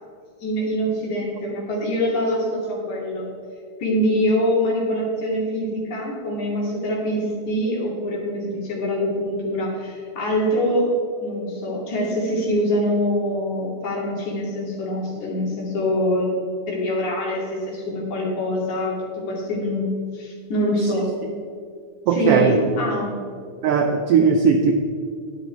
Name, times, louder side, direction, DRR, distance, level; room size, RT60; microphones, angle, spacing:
voice 1, 0.4-3.2 3.8-10.9 11.2-18.9 19.3-21.1 22.1-23.2, equal, 80° left, -3 dB, 3.8 m, -24 dB
voice 2, 22.1-22.6 23.6-24.7, right 6 dB, 85° right, 5 dB, 1.3 m, -18 dB
10.5 x 10.0 x 4.5 m, 2.2 s
omnidirectional pair, 3.3 m